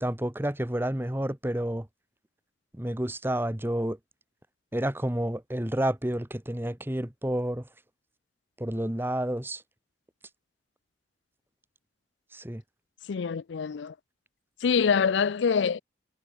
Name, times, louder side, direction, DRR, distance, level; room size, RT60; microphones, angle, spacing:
voice 1, 0.0-1.9 2.7-4.0 4.7-7.7 8.6-9.6 12.3-12.6, right 1 dB, 10° right, 1.2 m, -30 dB
voice 2, 13.1-13.9 14.6-15.8, left 6 dB, 75° left, 0.4 m, -25 dB
head